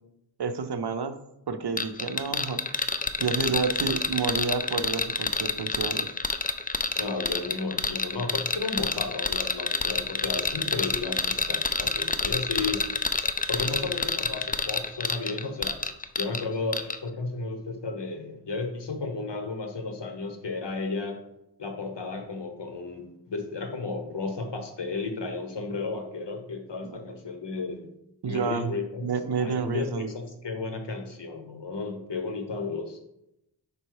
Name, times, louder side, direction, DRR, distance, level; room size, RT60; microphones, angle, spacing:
voice 1, 0.4-1.2 1.5-2.8 3.2-6.1 26.8-26.9 28.2-28.7 29.0-30.1, right 5 dB, 65° right, 9 dB, 0.6 m, -29 dB
sound 1, 1.8-16.4 16.7-17.0, left 4 dB, 20° left, 0.4 m, -28 dB
voice 2, 7.0-12.8 13.5-15.8 16.2-21.2 21.6-27.9 28.3-29.1 29.4-33.0, left 3 dB, 80° left, 5 dB, 1.0 m, -33 dB
5.3 x 4.2 x 4.7 m, 0.83 s
wide cardioid pair, 65°, 42 cm